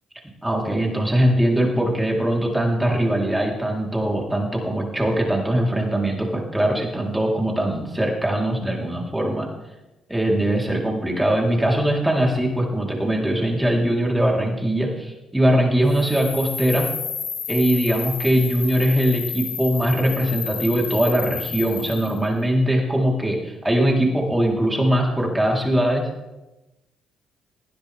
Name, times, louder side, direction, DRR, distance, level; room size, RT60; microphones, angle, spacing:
voice 1, 0.4-9.5 10.1-16.9 17.5-26.1, right 1 dB, 10° right, -1 dB, 3.7 m, -21 dB
sound 1, 15.9-22.2, left 6 dB, 70° left, 2.3 m, -31 dB
18.5 x 10.0 x 3.5 m, 0.99 s
supercardioid pair, 75°, 0 cm